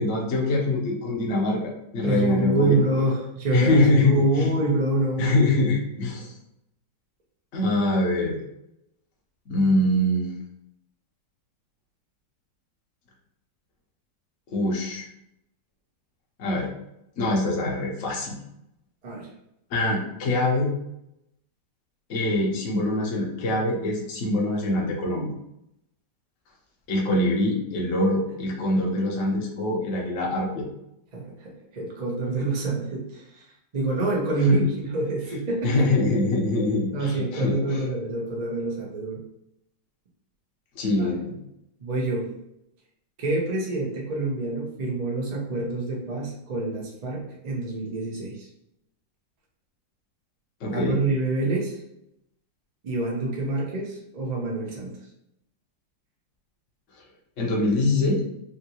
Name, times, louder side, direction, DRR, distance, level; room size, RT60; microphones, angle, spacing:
voice 1, 0.0-1.6 1.9-2.8 3.5-4.5 5.2-6.3 7.5-8.3 9.5-10.3 14.5-15.0 16.4-16.7 17.2-18.4 19.7-20.7 22.1-25.3 26.9-30.6 34.5-34.6 35.6-37.8 40.7-41.4 50.6-51.0 57.4-58.2, left 2 dB, 55° left, -1 dB, 0.9 m, -23 dB
voice 2, 2.0-5.3 19.0-19.3 31.1-33.4 33.7-35.9 36.9-39.2 41.0-41.1 41.8-42.3 43.2-48.5 50.7-51.8 52.8-54.9, right 2 dB, 45° right, -3 dB, 0.5 m, -27 dB
3.5 x 2.6 x 2.8 m, 0.82 s
omnidirectional pair, 2.0 m